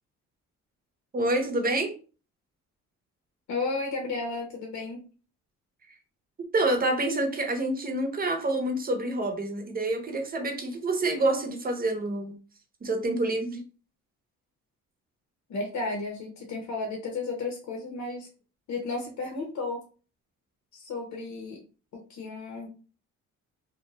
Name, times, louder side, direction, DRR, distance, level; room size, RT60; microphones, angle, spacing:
voice 1, 1.1-1.9 6.5-12.3 12.8-13.6, right 2 dB, 30° right, 4 dB, 0.8 m, -27 dB
voice 2, 3.5-5.0 15.5-18.3 18.7-19.8 20.7-21.6 21.9-22.7, left 3 dB, 70° left, 0 dB, 0.8 m, -33 dB
2.4 x 2.2 x 3.0 m, 0.37 s
cardioid pair, 90°, 30 cm